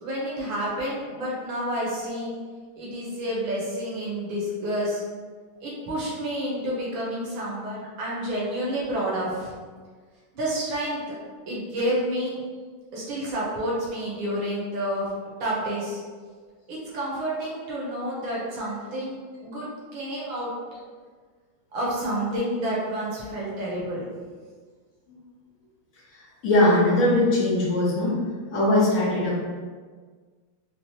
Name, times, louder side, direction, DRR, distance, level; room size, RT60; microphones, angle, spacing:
voice 1, 0.0-2.3 2.7-5.0 5.6-9.5 10.3-11.2 11.5-12.4 12.9-15.1 15.4-16.0 16.7-19.2 19.4-20.5 21.7-24.1, right 1 dB, 70° right, -6 dB, 1.7 m, -29 dB
voice 2, 26.4-28.2 28.5-29.4, left 1 dB, 55° left, -9 dB, 1.0 m, -20 dB
4.6 x 2.0 x 2.8 m, 1.5 s
omnidirectional pair, 2.4 m